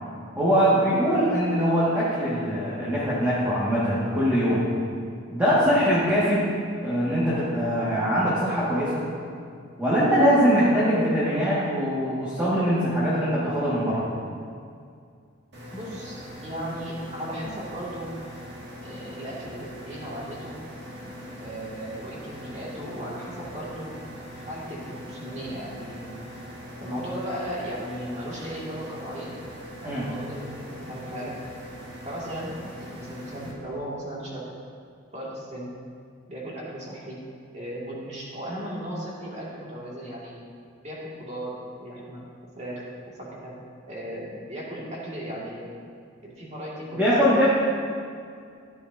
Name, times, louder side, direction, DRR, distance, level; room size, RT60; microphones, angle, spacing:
voice 1, 0.4-4.7 5.3-6.5 6.8-9.0 9.8-14.1 29.8-30.1 47.0-47.5, equal, 10° right, -11 dB, 2.0 m, -22 dB
sound 1, 15.5-33.5, equal, 55° right, 2.0 m, -41 dB
voice 2, 15.7-18.1 18.8-20.5 21.4-23.9 24.5-26.1 26.8-29.4 29.8-31.4 32.0-34.5 35.1-35.7 36.3-37.2 37.5-40.4 40.8-42.2 42.6-43.5 43.9-45.7 46.2-47.3, equal, 35° right, -6 dB, 2.4 m, -36 dB
14.5 x 9.8 x 2.8 m, 2.3 s
head